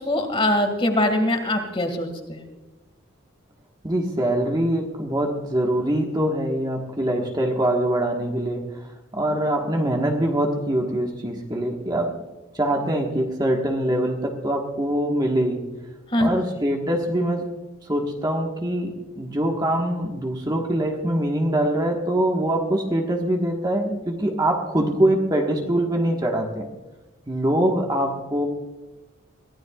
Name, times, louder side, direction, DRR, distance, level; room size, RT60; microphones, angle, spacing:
voice 1, 0.0-2.4 16.1-16.3, left 1 dB, 25° left, 5 dB, 2.0 m, -22 dB
voice 2, 3.8-12.1 12.5-15.7 16.2-17.5 17.8-26.7 27.3-28.5, right 1 dB, 20° right, 1 dB, 1.4 m, -23 dB
23.0 x 15.5 x 2.4 m, 1.1 s
head